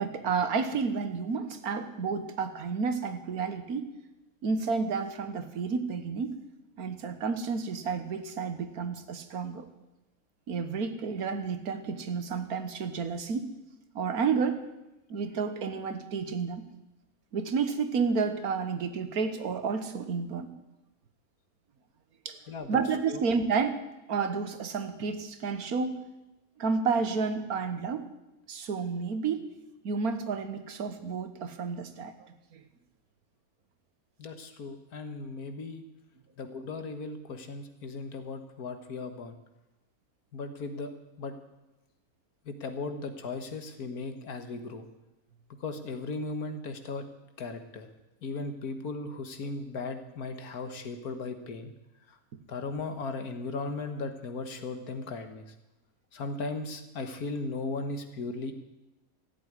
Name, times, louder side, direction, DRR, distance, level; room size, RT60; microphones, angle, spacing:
voice 1, 0.0-3.9 4.4-6.4 6.8-9.7 10.5-13.5 13.9-14.6 15.1-16.6 17.3-20.5 22.2-22.4 22.7-23.8 24.1-25.9 26.6-28.0 28.5-29.5 29.8-32.6, right 5 dB, 80° right, 9 dB, 1.7 m, -31 dB
voice 2, 22.5-22.8 23.1-23.2 34.2-35.8 36.4-39.4 40.3-40.9 41.2-41.4 42.5-44.9 45.6-47.1 47.4-47.9 48.2-51.7 52.1-52.2 52.5-55.5 56.1-58.5, left 3 dB, 85° left, 8 dB, 1.9 m, -37 dB
14.5 x 8.5 x 9.7 m, 0.97 s
omnidirectional pair, 1.6 m